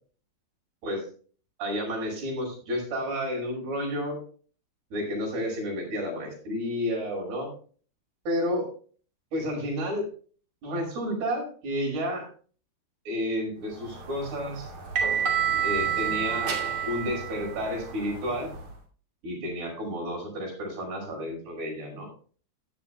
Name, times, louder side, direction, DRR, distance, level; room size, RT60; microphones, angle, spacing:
voice 1, 1.6-4.2 4.9-7.5 8.3-8.7 9.3-10.1 10.6-12.3 13.1-14.7 15.6-16.6 16.9-18.5 19.2-22.1, equal, 85° right, 1 dB, 7.7 m, -31 dB
sound 1, 13.9-18.7, right 7 dB, 40° right, 3.4 m, -29 dB
14.5 x 11.5 x 2.3 m, 0.41 s
omnidirectional pair, 4.5 m